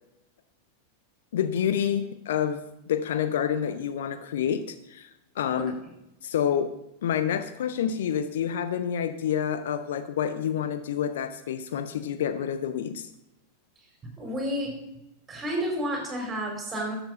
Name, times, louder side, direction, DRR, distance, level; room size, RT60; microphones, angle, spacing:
voice 1, 1.3-5.1 5.4-5.7 6.2-6.7 7.0-13.1, left 8 dB, 60° left, 11 dB, 0.6 m, -28 dB
voice 2, 14.2-14.7 15.3-16.9, equal, 15° right, 0 dB, 4.3 m, -30 dB
12.5 x 7.2 x 5.4 m, 0.87 s
figure-of-eight pair, 90°, 0 cm